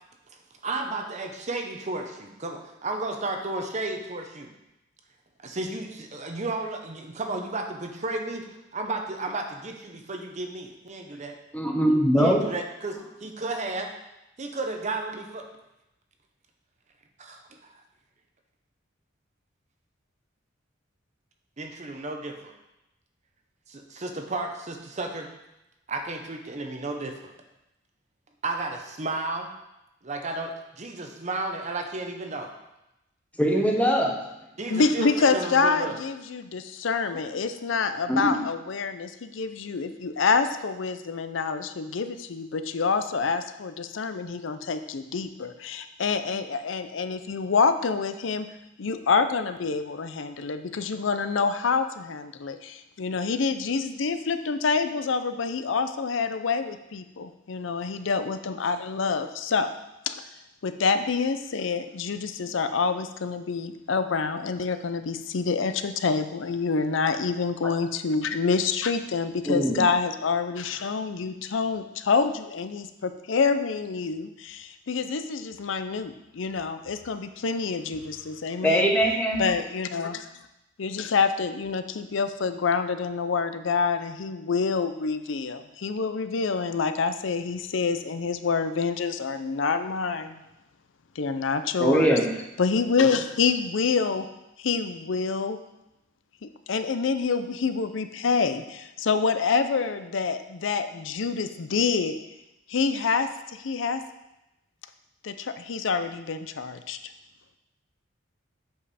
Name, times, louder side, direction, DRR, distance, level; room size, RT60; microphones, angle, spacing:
voice 1, 0.6-4.5 5.4-8.5 8.7-11.4 12.2-13.9 14.4-15.5 17.2-17.7 21.6-22.5 23.7-25.3 25.9-27.3 28.4-29.5 30.0-32.5 34.6-36.0, right 2 dB, 35° right, 4 dB, 0.7 m, -33 dB
voice 2, 11.5-12.4 33.4-34.2 38.1-38.4 69.5-69.8 78.6-79.4 91.8-92.2, equal, 5° left, 0 dB, 1.0 m, -21 dB
voice 3, 34.7-48.5 48.8-59.7 60.1-60.3 60.6-78.9 79.4-80.3 80.8-90.4 91.2-92.1 92.6-94.3 94.6-95.6 96.4-102.1 102.7-104.0 105.2-107.0, left 5 dB, 70° left, 10 dB, 0.5 m, -27 dB
8.0 x 5.3 x 4.2 m, 0.92 s
head